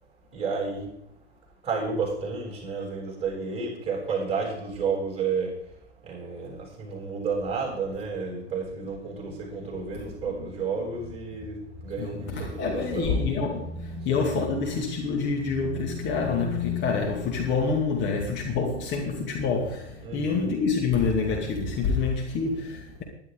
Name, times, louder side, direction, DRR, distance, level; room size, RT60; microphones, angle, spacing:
voice 1, 0.3-0.9 1.6-5.5 6.0-13.3 20.0-20.5, right 5 dB, 15° right, 7.4 m, -31 dB
voice 2, 12.0-23.0, left 4 dB, 30° left, 2.6 m, -27 dB
20.0 x 11.5 x 3.9 m
figure-of-eight pair, 100°, 35 cm